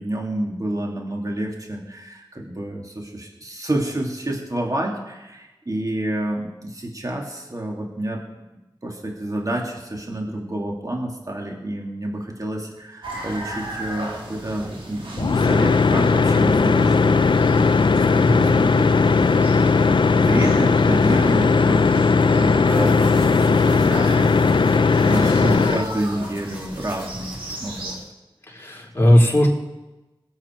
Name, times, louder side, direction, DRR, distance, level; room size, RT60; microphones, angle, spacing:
voice 1, 0.0-8.2 8.8-27.3 27.6-28.0, right 1 dB, 40° right, 0 dB, 2.7 m, -29 dB
sound 1, 13.0-27.9, right 1 dB, 80° right, 3.5 m, -36 dB
sound 2, 15.2-25.8, left 4 dB, 65° left, 0.5 m, -17 dB
voice 2, 18.2-18.5 28.5-29.5, equal, 25° left, -2 dB, 4.5 m, -17 dB
sound 3, 22.7-28.1, equal, 15° right, 6.1 m, -37 dB
22.0 x 8.5 x 4.6 m, 1.0 s
cardioid pair, 40°, 9 cm